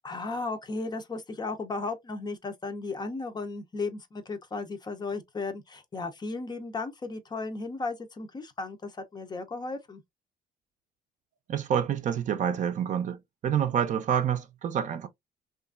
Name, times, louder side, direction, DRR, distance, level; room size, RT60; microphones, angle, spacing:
voice 1, 0.0-10.0, left 3 dB, 25° left, 0.6 m, -35 dB
voice 2, 11.5-13.2 13.4-15.1, right 8 dB, 45° right, 0.5 m, -27 dB
2.8 x 2.4 x 2.4 m
cardioid pair, 110°, 17 cm